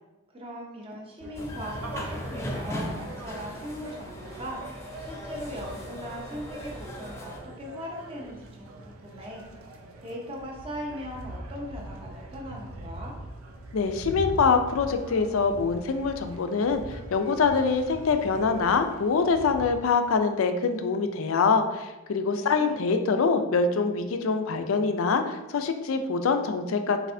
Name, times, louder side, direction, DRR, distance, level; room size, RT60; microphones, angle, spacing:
voice 1, 0.3-9.5 10.0-13.1 22.3-22.9, equal, 25° right, -1 dB, 0.8 m, -39 dB
sound 1, 1.2-19.7, right 1 dB, 80° right, 0.5 m, -42 dB
sound 2, 1.4-7.4, left 1 dB, 15° left, 0.4 m, -38 dB
voice 2, 13.7-27.1, left 4 dB, 75° left, 7 dB, 0.4 m, -24 dB
4.2 x 4.0 x 2.6 m, 1.1 s
head